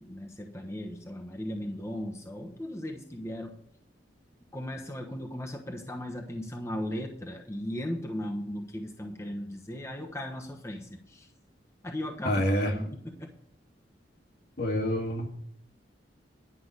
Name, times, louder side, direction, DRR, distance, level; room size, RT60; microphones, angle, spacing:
voice 1, 0.0-3.5 4.5-11.3 11.8-13.3, left 1 dB, 15° left, 0 dB, 1.1 m, -37 dB
voice 2, 12.2-12.7 14.6-15.3, equal, 55° left, 1 dB, 2.1 m, -27 dB
11.0 x 5.8 x 8.1 m, 0.68 s
head